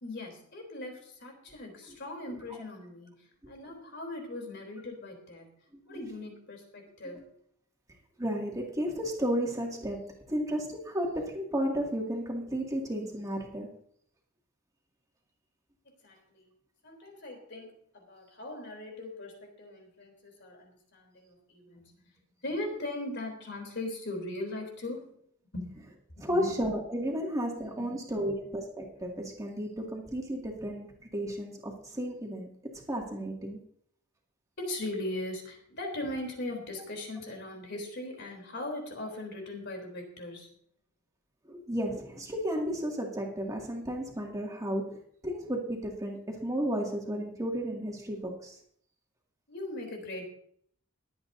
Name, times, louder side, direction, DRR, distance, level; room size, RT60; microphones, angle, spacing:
voice 1, 0.0-5.5 5.9-7.2 15.9-16.4 16.8-21.9 22.4-25.2 25.5-25.7 26.1-26.5 27.8-28.3 34.6-40.5 49.5-50.2, left 2 dB, 55° left, 2 dB, 3.5 m, -39 dB
voice 2, 5.7-6.1 7.0-7.2 8.2-13.7 26.2-32.5 32.9-33.6 41.4-45.0 45.2-48.6, equal, 15° right, -1 dB, 2.3 m, -33 dB
22.0 x 8.8 x 2.7 m, 0.64 s
head